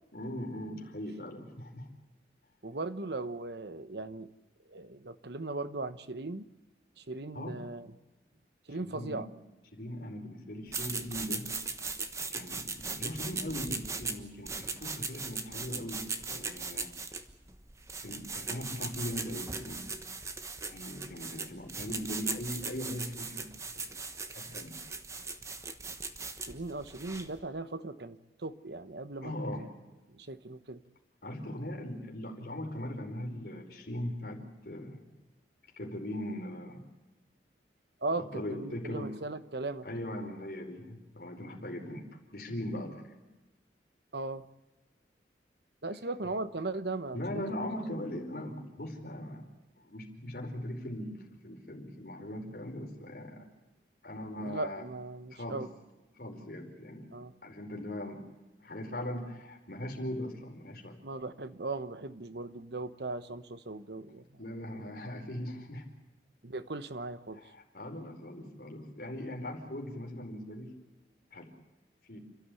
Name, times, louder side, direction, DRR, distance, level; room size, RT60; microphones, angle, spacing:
voice 1, 0.1-1.9 7.3-7.6 8.8-9.3 9.7-11.5 12.3-16.9 18.0-19.9 20.7-24.0 24.3-24.7 29.2-29.7 31.2-35.0 35.8-36.8 38.1-39.2 39.8-42.1 42.3-43.0 47.1-49.5 49.8-53.5 54.0-54.8 55.3-55.6 56.2-57.1 57.4-58.2 58.6-61.0 64.4-65.8 67.4-70.7 71.3-71.5 72.1-72.2, left 1 dB, 55° left, 1 dB, 4.9 m, -40 dB
voice 2, 2.6-4.3 4.7-6.5 7.0-7.9 8.7-9.3 26.5-29.3 30.1-30.8 38.0-39.9 44.1-44.4 45.8-47.4 54.4-55.7 57.1-57.3 61.0-64.2 66.4-67.4, right 2 dB, 70° right, 12 dB, 1.1 m, -38 dB
sound 1, 10.7-27.4, right 4 dB, 15° right, 1.2 m, -39 dB
29.5 x 13.0 x 8.5 m, 1.1 s
head